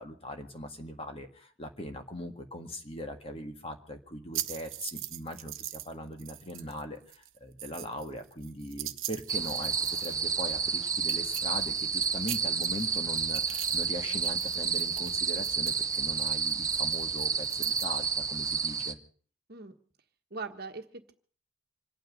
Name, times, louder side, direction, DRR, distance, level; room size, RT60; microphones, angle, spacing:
voice 1, 0.0-19.0, left 1 dB, 30° left, 5 dB, 1.7 m, -40 dB
sound 1, 4.3-5.9 6.2-6.8 7.1-10.3 10.6-10.7 11.0-12.0 12.2-13.9 14.1-17.8, right 14 dB, 80° right, 1.0 m, -41 dB
sound 2, 9.3-18.9, right 6 dB, 15° right, 0.7 m, -30 dB
voice 2, 20.3-21.1, right 4 dB, 50° right, 6 dB, 1.4 m, -40 dB
26.5 x 9.3 x 5.3 m, 0.43 s
head